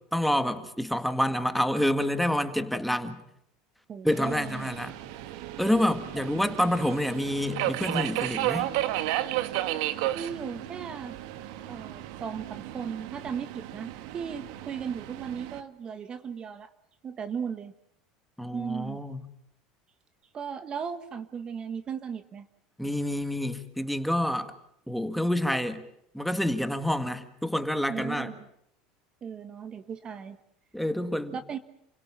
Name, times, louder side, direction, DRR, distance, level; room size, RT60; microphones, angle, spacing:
voice 1, 0.1-3.2 4.0-4.9 5.6-8.7 18.4-19.2 22.8-24.5 24.9-25.8 26.1-28.3 30.7-31.4, left 1 dB, ahead, 9 dB, 1.8 m, -28 dB
voice 2, 3.9-4.7 6.3-6.4 10.1-11.2 11.7-16.7 17.0-17.7 18.5-19.0 20.3-22.5 27.9-28.5 29.2-30.4 31.3-31.6, right 7 dB, 30° right, 11 dB, 1.3 m, -36 dB
Subway metro underground, 4.1-15.6, right 14 dB, 75° right, 1.5 m, -33 dB
29.5 x 17.0 x 8.7 m, 0.75 s
supercardioid pair, 120°, 3 cm